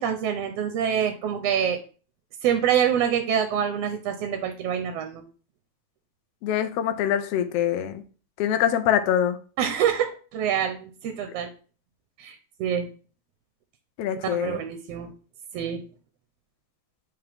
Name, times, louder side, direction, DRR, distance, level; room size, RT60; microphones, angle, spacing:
voice 1, 0.0-1.8 2.4-5.2 9.6-11.5 12.2-12.9 14.3-15.1 15.5-15.8, right 8 dB, 75° right, 7 dB, 1.5 m, -26 dB
voice 2, 6.4-8.0 8.4-9.4 14.0-14.6, left 10 dB, 75° left, 7 dB, 1.5 m, -24 dB
8.5 x 3.5 x 3.4 m, 0.38 s
omnidirectional pair, 3.4 m